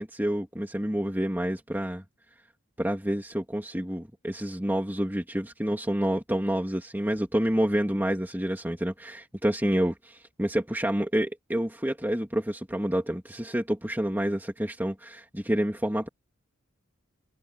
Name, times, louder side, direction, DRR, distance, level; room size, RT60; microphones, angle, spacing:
voice 1, 0.0-2.0 2.8-16.1, equal, 10° right, 2.6 m, -28 dB
head